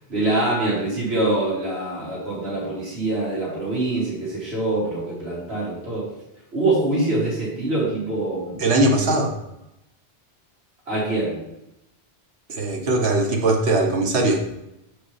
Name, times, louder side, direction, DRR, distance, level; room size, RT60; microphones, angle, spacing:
voice 1, 0.1-6.1 6.5-8.6 9.0-9.2 10.9-11.4, right 2 dB, 70° right, -8 dB, 2.2 m, -24 dB
voice 2, 8.6-9.3 12.5-14.4, right 2 dB, 85° right, 2 dB, 1.3 m, -20 dB
6.7 x 5.0 x 3.2 m, 0.87 s
omnidirectional pair, 1.1 m